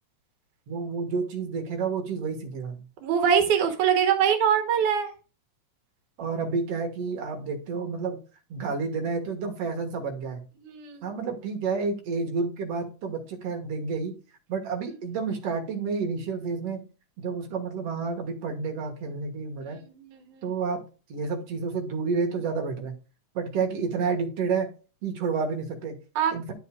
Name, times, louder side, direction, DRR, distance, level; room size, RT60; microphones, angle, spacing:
voice 1, 0.7-2.8 6.2-8.2 8.5-10.4 11.0-14.1 14.5-16.8 17.2-19.8 20.4-20.8 21.1-22.9 23.3-24.7 25.0-26.0 26.3-26.5, right 4 dB, 60° right, 3 dB, 2.5 m, -30 dB
voice 2, 3.0-5.1 10.6-11.0 20.1-20.2 26.2-26.3, right 8 dB, 85° right, 5 dB, 2.5 m, -23 dB
11.5 x 6.6 x 2.3 m, 0.34 s
omnidirectional pair, 3.4 m